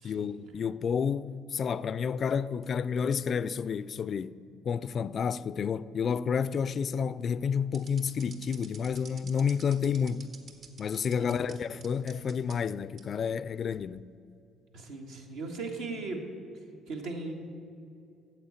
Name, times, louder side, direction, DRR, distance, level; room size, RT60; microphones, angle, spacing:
voice 1, 0.0-4.4 4.6-10.3 10.8-14.1, left 6 dB, 50° left, 0.3 m, -30 dB
sound 1, 7.7-11.5 11.8-12.5 13.0-13.1 13.7-14.0, right 5 dB, 65° right, 1.3 m, -49 dB
voice 2, 14.7-16.2 16.9-17.3, right 3 dB, 80° right, 1.6 m, -38 dB
9.0 x 7.6 x 7.9 m
hypercardioid pair, 60°, 0 cm